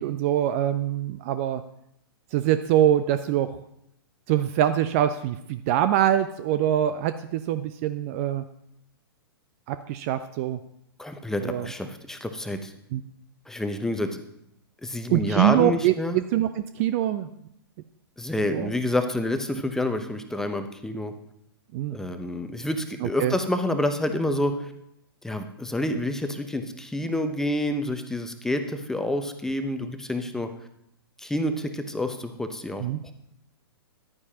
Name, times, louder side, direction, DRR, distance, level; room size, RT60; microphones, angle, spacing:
voice 1, 0.0-1.6 2.3-3.6 4.3-8.4 9.7-10.6 11.4-11.7 12.9-13.0 15.1-17.3 18.5-18.7 21.7-22.0 23.0-23.3 32.8-33.0, right 11 dB, 35° right, 12 dB, 0.5 m, -24 dB
voice 2, 11.0-12.7 13.5-14.2 14.8-16.2 18.2-21.1 21.9-24.7 25.2-30.5 31.2-33.1, left 1 dB, 5° left, 7 dB, 0.8 m, -28 dB
14.5 x 11.0 x 2.9 m, 0.78 s
figure-of-eight pair, 110°, 13 cm